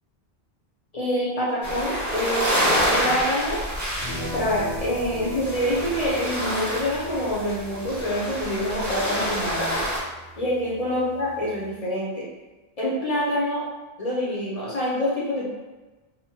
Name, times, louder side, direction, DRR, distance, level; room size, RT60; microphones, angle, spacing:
voice 1, 0.9-2.4 2.9-3.6 4.3-9.8 10.4-12.3 12.8-13.6 14.0-15.5, equal, 45° left, -6 dB, 0.7 m, -26 dB
sound 1, 1.6-10.0, equal, 20° right, 0.6 m, -27 dB
sound 2, 3.9-11.7, equal, 75° left, 1.0 m, -40 dB
2.8 x 2.1 x 2.8 m, 1.2 s
omnidirectional pair, 1.1 m